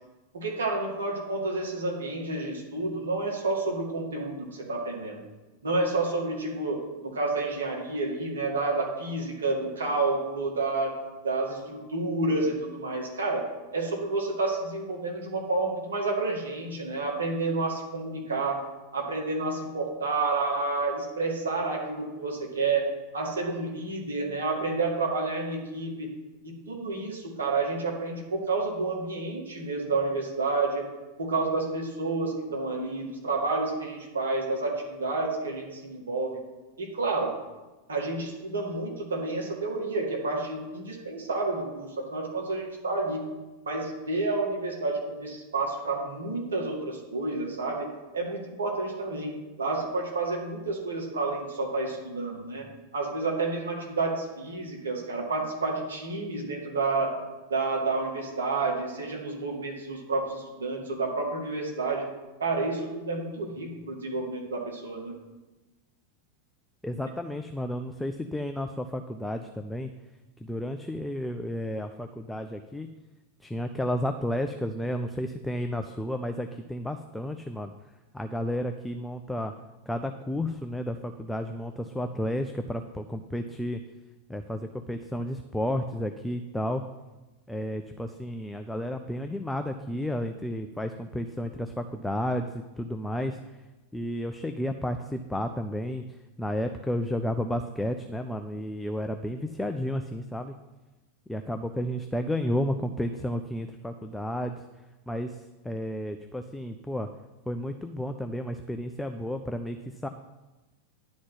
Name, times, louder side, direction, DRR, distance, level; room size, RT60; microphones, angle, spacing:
voice 1, 0.3-5.2 5.6-11.0 11.2-13.4 13.7-18.6 18.9-22.9 23.1-26.1 26.4-30.9 31.2-36.4 36.8-37.3 37.9-43.2 43.7-52.7 52.9-57.1 57.5-62.1 62.4-65.2, right 3 dB, 70° right, -1 dB, 2.1 m, -30 dB
voice 2, 66.8-69.9 70.4-72.9 73.4-77.7 78.1-79.5 79.9-83.8 84.3-86.8 87.5-93.4 93.9-96.0 96.4-100.5 101.3-104.5 105.1-107.1 107.5-109.8 110.0-110.1, equal, 5° left, 6 dB, 0.5 m, -32 dB
11.0 x 4.2 x 7.6 m, 1.1 s
figure-of-eight pair, 90°, 0 cm